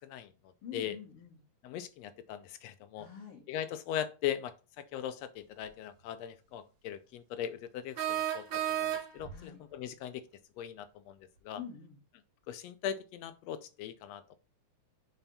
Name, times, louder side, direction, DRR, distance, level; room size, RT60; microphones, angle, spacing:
voice 1, 0.6-1.4 3.0-3.4 9.3-9.6 11.5-12.0, left 7 dB, 55° left, 2.2 m, -46 dB
voice 2, 1.6-3.1 3.5-10.2 10.6-11.2 11.4-11.6 12.5-14.4, left 10 dB, 80° left, 1.5 m, -39 dB
sound 1, 5.6-5.7 8.0-9.4, right 11 dB, 75° right, 2.1 m, -33 dB
5.8 x 4.4 x 5.2 m
omnidirectional pair, 3.4 m